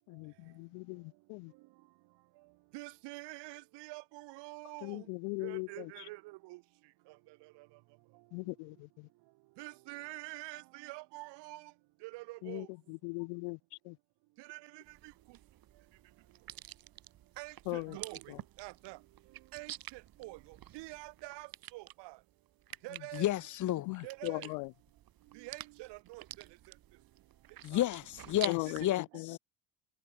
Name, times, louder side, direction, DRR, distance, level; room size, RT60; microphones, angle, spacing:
voice 1, 0.1-1.5 4.8-6.0 8.3-9.1 12.4-13.6 13.8-14.0 17.7-18.0 18.3-18.4 23.9-24.7 28.4-29.4, left 38 dB, 90° left, 0.6 m, -39 dB
voice 2, 2.7-5.0 5.4-6.6 9.6-11.7 12.0-12.7 14.4-14.8 17.4-18.2 18.6-19.0 19.5-20.4 20.7-22.2 22.8-23.3 24.0-24.5 25.3-26.2 27.7-27.8, right 22 dB, 75° right, 1.1 m, -46 dB
sound 1, 14.8-28.8, right 12 dB, 55° right, 3.8 m, -49 dB
voice 3, 23.1-23.9 27.6-29.1, left 14 dB, 45° left, 0.7 m, -31 dB
cardioid pair, 110°, 42 cm